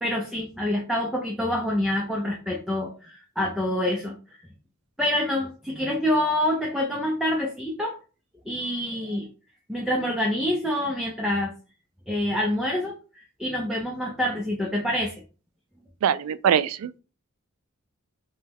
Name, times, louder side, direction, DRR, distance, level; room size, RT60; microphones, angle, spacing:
voice 1, 0.0-4.1 5.0-7.9 8.5-9.3 9.7-11.5 12.1-15.2, left 1 dB, ahead, 0.6 m, -26 dB
voice 2, 16.0-17.0, right 8 dB, 85° right, 0.3 m, -23 dB
5.3 x 2.2 x 3.4 m
head